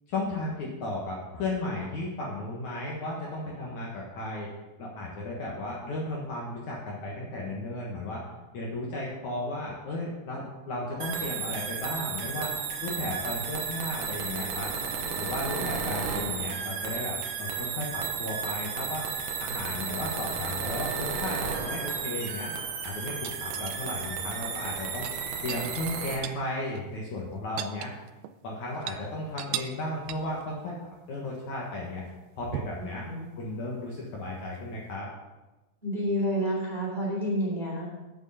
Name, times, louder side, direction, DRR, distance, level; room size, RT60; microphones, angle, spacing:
voice 1, 0.1-4.5 4.8-8.2 8.5-12.5 12.8-14.7 15.2-19.0 19.4-22.5 22.8-25.1 25.4-27.9 28.4-30.7 31.1-32.0 32.4-33.0 33.4-35.1, left 2 dB, 55° left, -3 dB, 2.6 m, -34 dB
sound 1, 11.0-26.2, right 6 dB, 65° right, 2.4 m, -33 dB
voice 2, 15.5-15.8 32.8-33.3 35.8-37.9, equal, 15° right, -4 dB, 2.7 m, -30 dB
sound 2, 23.2-24.1 24.9-26.5 26.8-26.9 27.2-28.4 28.7-29.0 29.4-29.8 30.1-30.4 32.5-32.9 34.5-34.6, right 12 dB, 80° right, 2.4 m, -37 dB
9.1 x 8.4 x 5.7 m, 1.1 s
omnidirectional pair, 4.6 m